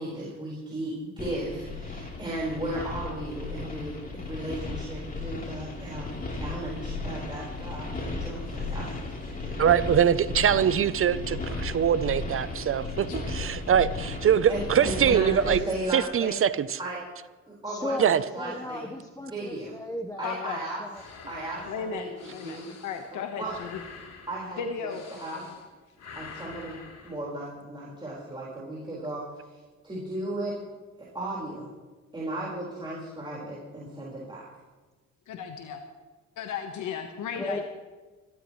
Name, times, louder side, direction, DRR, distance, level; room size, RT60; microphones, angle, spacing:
voice 1, 0.0-9.6 14.5-16.4 16.8-17.0 17.5-18.9 19.3-19.7 20.2-20.8 21.3-22.1 22.4-22.7 23.4-23.5 24.3-25.4 26.1-26.7 27.0-29.3 29.8-30.5 31.0-31.7 32.1-34.5, right 1 dB, 15° right, -6 dB, 4.7 m, -35 dB
sound 1, 1.2-15.6, left 3 dB, 30° left, 3.5 m, -35 dB
voice 2, 9.6-15.6 15.9-16.8 18.0-18.2, right 8 dB, 45° right, 15 dB, 0.6 m, -23 dB
voice 3, 17.7-21.0 37.4-37.6, left 1 dB, 10° left, 4 dB, 1.1 m, -36 dB
voice 4, 20.2-20.6 21.7-22.1 22.3-23.8 24.6-25.0 35.3-35.8 36.4-37.6, left 6 dB, 80° left, 5 dB, 1.3 m, -35 dB
sound 2, 20.9-25.7 26.0-27.1, left 5 dB, 60° left, 3.2 m, -46 dB
26.0 x 13.0 x 3.2 m, 1.3 s
cardioid pair, 90°, 30 cm